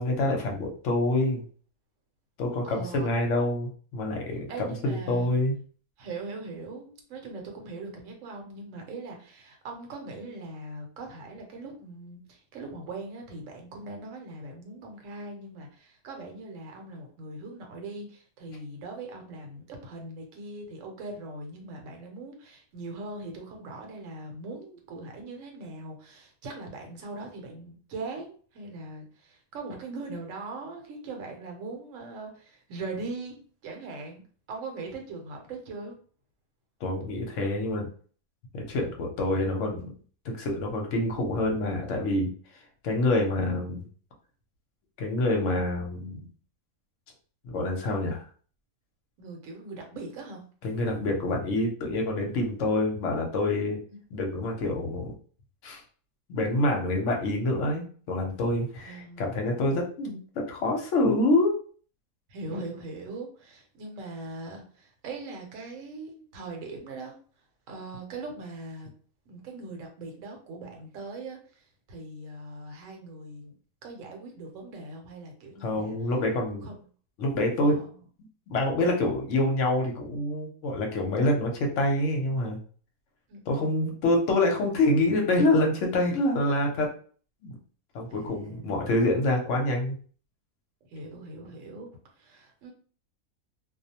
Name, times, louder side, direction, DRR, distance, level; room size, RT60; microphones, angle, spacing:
voice 1, 0.0-1.4 2.4-5.6 36.8-37.9 38.5-39.9 40.2-42.3 42.8-43.8 45.0-46.3 47.4-48.2 50.6-53.8 54.1-55.1 55.6-55.8 56.3-61.5 75.6-76.7 77.2-77.8 78.5-82.6 83.5-86.9 87.4-87.6 87.9-90.0, left 1 dB, 60° left, 1 dB, 0.9 m, -26 dB
voice 2, 2.6-3.1 4.5-5.3 6.0-33.3 33.6-34.2 34.5-36.0 49.2-50.4 53.9-54.0 58.8-59.9 62.3-67.2 67.7-68.9 69.3-71.4 71.9-73.5 73.8-75.9 76.6-76.8 77.6-77.9 82.3-82.4 83.3-83.9 88.1-89.0 90.9-91.9 92.2-92.7, right 3 dB, 65° right, 2 dB, 1.0 m, -40 dB
2.4 x 2.0 x 2.8 m, 0.43 s
omnidirectional pair, 1.6 m